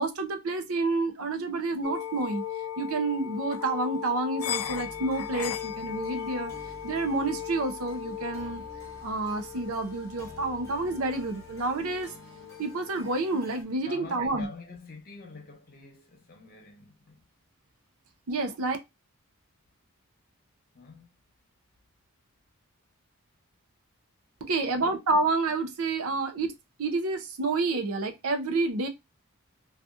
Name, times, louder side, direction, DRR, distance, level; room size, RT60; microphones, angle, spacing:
voice 1, 0.0-2.4 2.8-6.5 6.8-8.6 9.0-12.1 12.6-14.5 18.3-18.8 24.5-26.5 26.8-28.9, right 3 dB, 75° right, 0.6 m, -29 dB
sound 1, 1.8-13.5, left 9 dB, 80° left, 0.3 m, -38 dB
sound 2, 4.6-13.6, left 1 dB, 10° left, 0.8 m, -50 dB
voice 2, 13.8-17.2 20.7-21.1 24.4-25.0 26.1-26.2, left 3 dB, 40° left, 0.8 m, -47 dB
2.7 x 2.4 x 2.3 m
head